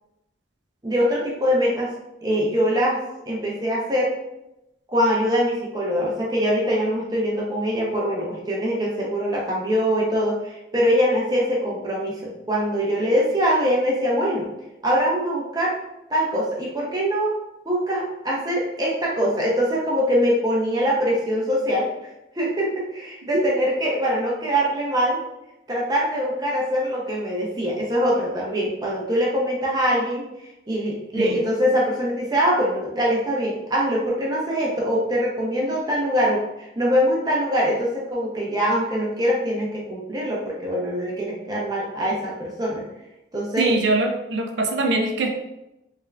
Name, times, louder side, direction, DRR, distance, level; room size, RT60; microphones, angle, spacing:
voice 1, 0.8-1.9 2.2-3.0 3.3-4.1 4.9-14.5 14.8-15.7 16.1-17.3 17.6-21.9 22.4-25.2 25.7-30.2 30.7-42.8 43.3-43.8, equal, 20° right, -4 dB, 0.7 m, -23 dB
voice 2, 43.6-45.3, right 2 dB, 70° right, 4 dB, 0.5 m, -22 dB
3.5 x 3.3 x 2.5 m, 0.90 s
head